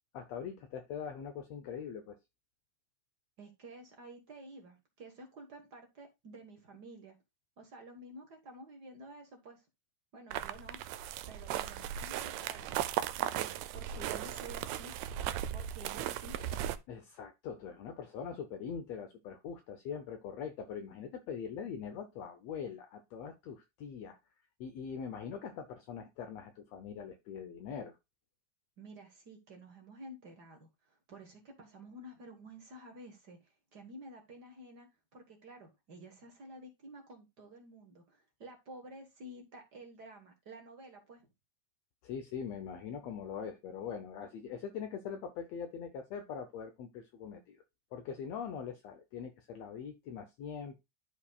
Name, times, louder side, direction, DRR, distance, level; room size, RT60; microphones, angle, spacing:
voice 1, 0.1-2.2 16.9-24.2 24.6-28.0 42.0-47.6 47.9-50.8, left 7 dB, 70° left, 1.8 m, -42 dB
voice 2, 3.4-7.1 7.6-9.6 10.1-10.8 11.3-12.8 13.1-14.9 15.5-16.4 28.8-34.9 35.1-41.3, right 1 dB, 45° right, 1.4 m, -51 dB
sound 1, 10.3-16.8, right 11 dB, 80° right, 1.7 m, -37 dB
12.5 x 4.6 x 2.3 m
omnidirectional pair, 3.3 m